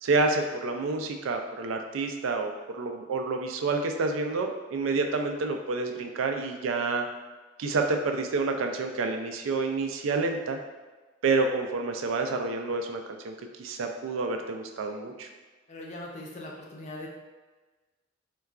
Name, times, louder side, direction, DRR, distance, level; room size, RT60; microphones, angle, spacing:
voice 1, 0.0-7.1 7.6-10.6 11.2-15.3, right 3 dB, 90° right, 5 dB, 0.3 m, -29 dB
voice 2, 15.7-17.1, left 1 dB, 35° left, -2 dB, 0.5 m, -40 dB
3.8 x 2.2 x 2.3 m, 1.3 s
head